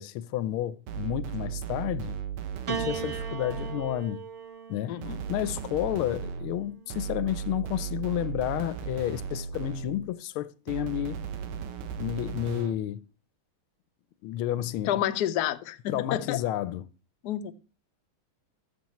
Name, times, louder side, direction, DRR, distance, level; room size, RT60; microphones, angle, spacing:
voice 1, 0.0-2.2 2.7-4.2 4.7-4.9 5.3-11.2 12.0-13.0 14.2-15.0 15.9-16.8, left 13 dB, 90° left, 1.5 m, -31 dB
sound 1, 0.9-4.1 5.0-10.2 10.7-12.9, right 7 dB, 85° right, 1.8 m, -36 dB
Piano, 2.7-7.2 8.2-8.9, right 7 dB, 45° right, 1.0 m, -39 dB
voice 2, 2.8-3.1 4.9-5.2 14.8-16.4 17.2-17.5, left 12 dB, 70° left, 1.0 m, -30 dB
13.0 x 7.4 x 3.0 m
omnidirectional pair, 2.3 m